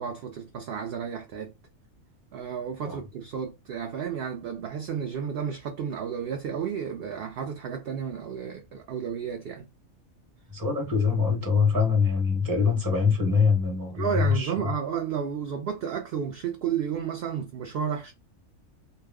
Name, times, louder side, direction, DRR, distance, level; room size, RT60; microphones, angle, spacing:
voice 1, 0.0-1.5 2.3-9.7 13.9-18.1, right 7 dB, 65° right, 0.6 m, -32 dB
voice 2, 10.5-14.5, left 5 dB, 15° right, 0.9 m, -23 dB
2.3 x 2.1 x 3.4 m
omnidirectional pair, 1.4 m